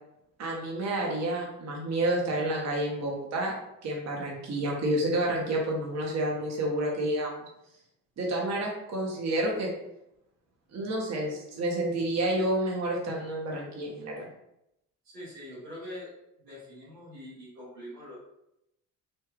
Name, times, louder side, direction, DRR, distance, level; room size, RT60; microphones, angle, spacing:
voice 1, 0.4-7.4 8.2-9.7 10.7-14.2, right 1 dB, 35° right, -2 dB, 0.9 m, -29 dB
voice 2, 15.0-16.1 16.4-18.2, left 1 dB, 80° right, -8 dB, 1.1 m, -43 dB
3.3 x 2.6 x 2.3 m, 0.81 s
figure-of-eight pair, 45°, 48 cm